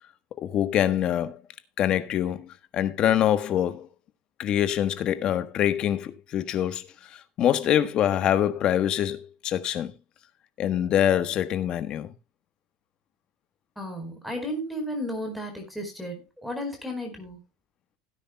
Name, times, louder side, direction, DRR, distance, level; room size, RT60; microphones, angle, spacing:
voice 1, 0.4-1.4 1.8-3.9 4.4-9.9 10.6-12.1, left 10 dB, 40° left, 1.3 m, -25 dB
voice 2, 13.8-17.4, equal, ahead, 4.8 m, -33 dB
17.0 x 9.8 x 2.3 m
cardioid pair, 145°, 2 cm